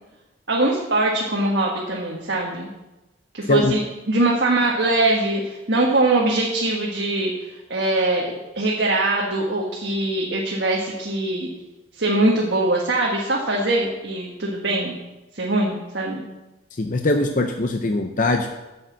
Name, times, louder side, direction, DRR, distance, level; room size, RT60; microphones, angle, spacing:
voice 1, 0.5-2.7 3.3-3.8 4.1-7.3 7.7-11.5 11.9-15.0 15.3-16.2, right 2 dB, 65° right, -2 dB, 1.5 m, -22 dB
voice 2, 16.8-18.5, left 2 dB, 45° left, 4 dB, 0.7 m, -21 dB
8.8 x 6.6 x 7.4 m, 1.1 s
head